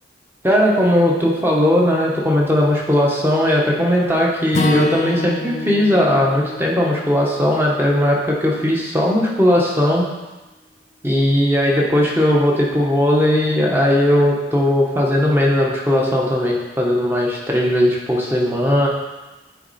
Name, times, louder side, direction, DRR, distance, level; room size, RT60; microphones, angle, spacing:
voice 1, 0.4-10.1 11.0-18.9, left 1 dB, 10° right, -3 dB, 1.1 m, -17 dB
Acoustic guitar / Strum, 4.5-8.8, left 2 dB, 35° left, 0.5 m, -28 dB
9.5 x 4.1 x 4.2 m, 1.1 s
head